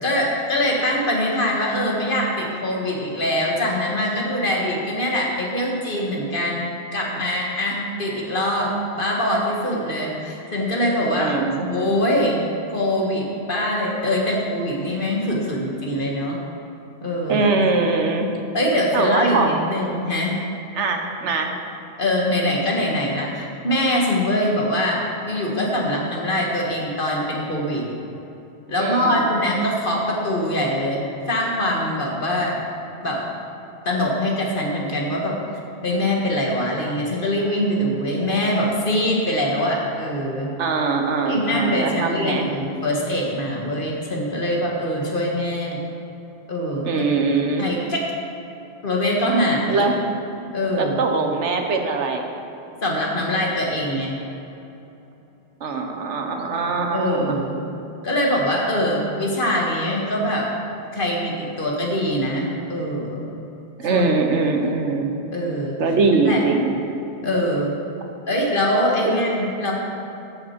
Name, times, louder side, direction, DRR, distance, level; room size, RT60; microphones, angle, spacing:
voice 1, 0.0-11.4 11.7-16.4 17.0-17.5 18.5-20.4 22.0-27.9 28.7-32.6 33.0-33.3 33.9-35.4 35.8-40.5 41.2-45.8 46.5-47.0 47.6-48.0 48.8-49.9 50.5-51.1 52.8-54.2 56.9-57.6 58.0-60.5 60.9-63.3 63.9-64.0 65.3-65.8 66.2-66.4 67.2-67.7 68.3-69.7, left 1 dB, 50° left, -2 dB, 1.7 m, -23 dB
voice 2, 11.2-11.7 17.3-18.3 18.9-19.6 20.7-21.6 28.8-29.4 40.6-42.5 46.8-47.7 49.7-49.9 50.7-52.3 55.6-57.4 63.8-65.1 65.8-66.7 69.0-69.2, right 4 dB, 90° right, 4 dB, 1.3 m, -22 dB
14.0 x 6.2 x 4.4 m, 2.9 s
omnidirectional pair, 1.2 m